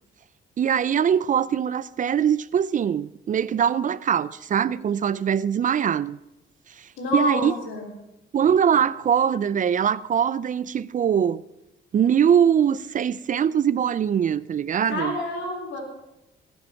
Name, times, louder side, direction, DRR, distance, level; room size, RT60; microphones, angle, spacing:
voice 1, 0.6-6.2 6.8-7.5 8.3-11.4 11.9-15.1, right 8 dB, 40° right, 0.4 m, -22 dB
voice 2, 7.0-7.9 14.8-15.8, left 1 dB, 80° left, 3.8 m, -27 dB
19.0 x 8.0 x 5.7 m
cardioid pair, 90°, 20 cm